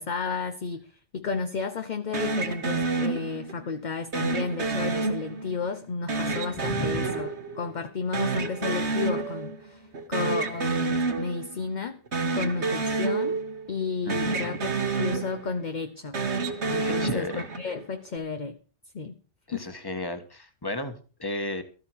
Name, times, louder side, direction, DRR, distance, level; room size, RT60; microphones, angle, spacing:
voice 1, 0.0-12.0 12.3-13.4 13.7-16.2 16.7-18.6 18.9-19.2 19.5-19.8, left 5 dB, 45° left, 0.9 m, -32 dB
sound 1, 2.1-3.7 4.1-5.7 6.1-7.9 8.1-9.7 9.9-11.7 12.1-13.8 14.1-15.7 16.1-17.8, right 3 dB, 65° right, 1.7 m, -29 dB
voice 2, 6.7-7.1 14.0-14.6 16.8-17.5 19.5-21.6, left 2 dB, 20° left, 1.6 m, -34 dB
14.0 x 12.5 x 4.8 m
omnidirectional pair, 1.2 m